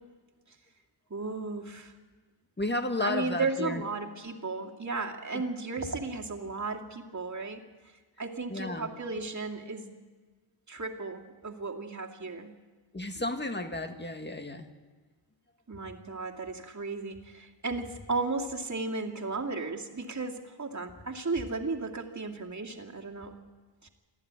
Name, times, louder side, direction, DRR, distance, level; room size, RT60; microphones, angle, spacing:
voice 1, 1.1-1.9 3.0-7.6 8.2-9.9 10.7-12.5 15.7-23.3 23.8-23.9, right 3 dB, 35° right, 1 dB, 2.4 m, -35 dB
voice 2, 2.6-3.8 8.5-8.9 12.9-14.7, left 2 dB, 20° left, 6 dB, 1.8 m, -32 dB
25.0 x 14.5 x 9.6 m, 1.3 s
wide cardioid pair, 110°, 49 cm